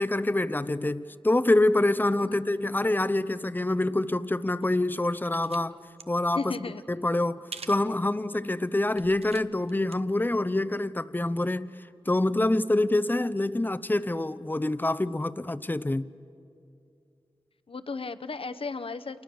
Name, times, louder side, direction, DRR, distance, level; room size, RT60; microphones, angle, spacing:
voice 1, 0.0-5.8 6.1-6.4 6.9-11.7 12.1-16.1, left 2 dB, 20° left, 0.7 m, -26 dB
sound 1, 4.6-5.6 5.9-6.0 7.5-7.9 8.3-8.5 8.9-10.0 10.3-10.4, right 5 dB, 90° right, 0.9 m, -44 dB
voice 2, 6.3-6.8 17.7-19.2, left 4 dB, 65° left, 1.0 m, -34 dB
29.5 x 27.5 x 7.0 m
wide cardioid pair, 70°, 10 cm